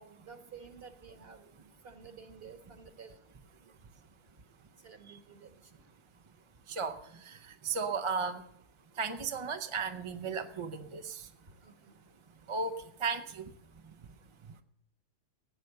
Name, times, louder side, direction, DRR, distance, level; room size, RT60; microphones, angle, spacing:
voice 1, 0.0-3.2 3.6-3.7 4.8-5.8 7.7-8.0 11.6-12.1, right 5 dB, 50° right, 6 dB, 1.6 m, -52 dB
voice 2, 6.7-7.0 7.3-7.4 7.6-8.4 9.0-11.3 12.5-13.5, right 5 dB, 35° right, 7 dB, 0.6 m, -35 dB
16.5 x 8.1 x 6.7 m, 0.74 s
omnidirectional pair, 1.3 m